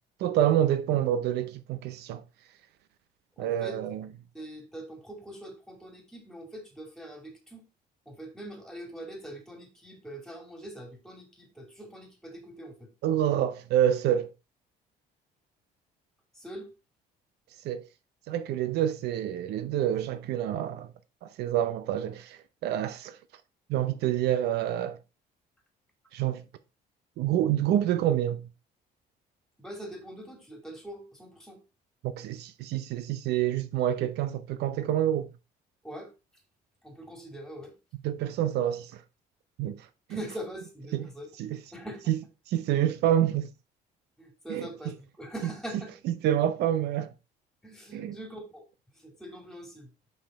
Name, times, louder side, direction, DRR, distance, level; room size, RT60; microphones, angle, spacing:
voice 1, 0.2-2.2 3.4-4.0 13.0-14.3 17.6-17.9 18.3-20.9 21.2-23.2 23.7-25.0 26.1-26.4 27.2-28.5 32.0-35.3 38.0-39.0 39.6-40.2 40.9-41.1 41.4-41.6 42.1-42.2 42.5-43.5 44.5-44.7 46.0-47.1 47.9-48.2, right 11 dB, 75° right, 0.6 m, -27 dB
voice 2, 3.4-3.8 4.3-7.7 8.1-12.9 16.3-16.7 29.6-31.6 35.8-36.1 36.8-37.7 40.1-41.3 41.7-42.1 44.2-44.9 45.2-45.9 47.6-48.7 48.9-49.9, right 1 dB, 5° left, 2.5 m, -43 dB
5.6 x 5.5 x 4.1 m
cardioid pair, 110°, 17 cm